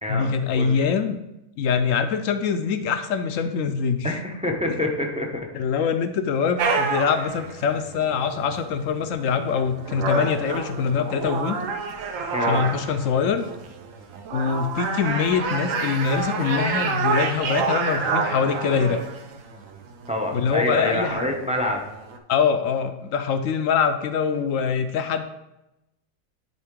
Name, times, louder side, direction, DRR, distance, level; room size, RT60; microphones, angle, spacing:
voice 1, 0.1-1.2 1.6-4.1 4.7-4.8 5.5-11.6 12.5-13.4 14.3-19.0 20.3-21.2 22.3-25.2, left 6 dB, 70° left, 9 dB, 0.9 m, -24 dB
voice 2, 4.0-5.5 12.3-12.7 20.1-21.8, left 1 dB, 10° right, 1 dB, 0.4 m, -26 dB
sound 1, 6.6-22.2, right 4 dB, 65° right, 1.0 m, -29 dB
10.5 x 3.7 x 3.7 m, 0.90 s
omnidirectional pair, 1.6 m